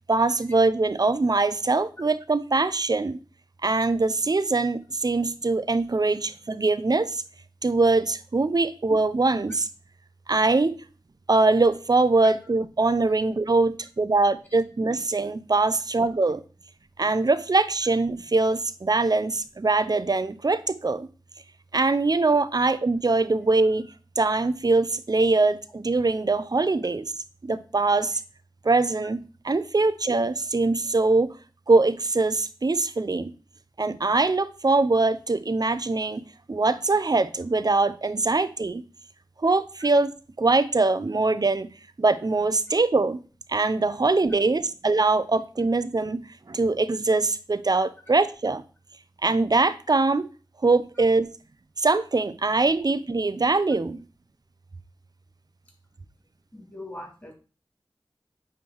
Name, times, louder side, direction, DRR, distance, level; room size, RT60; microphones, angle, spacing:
voice 1, 0.1-3.2 3.6-7.2 7.6-9.7 10.3-10.7 11.3-16.4 17.0-21.1 21.7-27.1 27.4-28.2 28.6-31.3 31.7-33.3 33.8-38.9 39.4-40.1 40.4-41.7 42.0-43.2 43.5-48.6 49.2-50.3 50.6-51.4 51.8-54.1, right 3 dB, 50° right, 0.6 m, -23 dB
voice 2, 56.5-57.3, left 1 dB, 25° left, 3.7 m, -41 dB
9.2 x 3.4 x 4.6 m
wide cardioid pair, 45°, 8 cm